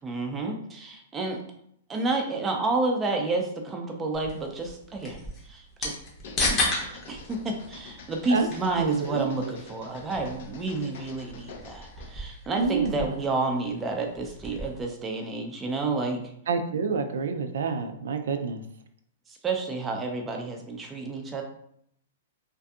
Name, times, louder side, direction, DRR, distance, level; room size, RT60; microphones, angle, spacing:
voice 1, 0.0-1.4 1.9-6.0 6.4-16.2 19.4-21.4, right 3 dB, 15° right, 2 dB, 0.4 m, -30 dB
sound 1, 4.1-14.8, left 2 dB, 20° left, 0.7 m, -35 dB
sound 2, 6.1-12.2, left 4 dB, 55° left, 0.4 m, -47 dB
voice 2, 8.8-9.6 12.6-13.1 16.5-18.6, right 5 dB, 85° right, 7 dB, 0.3 m, -28 dB
2.6 x 2.5 x 2.3 m, 0.69 s
hypercardioid pair, 155°, 0 cm